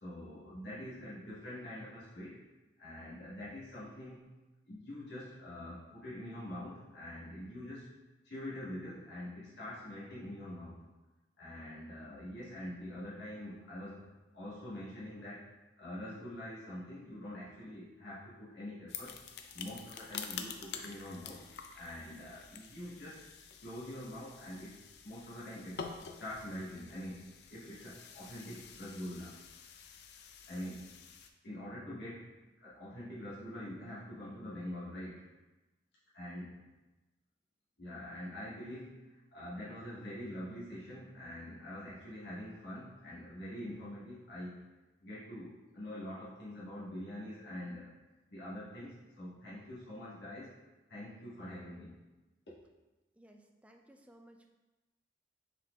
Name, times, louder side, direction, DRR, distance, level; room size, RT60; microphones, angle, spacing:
voice 1, 0.0-2.4 2.8-4.3 4.7-7.9 8.2-10.8 11.4-15.5 15.8-19.2 19.5-21.4 21.7-23.3 23.6-25.9 26.2-29.4 30.5-31.0 31.4-35.3 36.1-36.6 37.8-44.6 45.0-47.9 48.3-50.5 50.9-52.0, left 1 dB, 85° left, -9 dB, 1.3 m, -45 dB
sound 1, 18.9-31.3, left 6 dB, 70° left, 0.4 m, -48 dB
voice 2, 53.1-54.5, right 1 dB, 10° right, 3 dB, 0.3 m, -59 dB
5.6 x 4.0 x 2.3 m, 1.1 s
head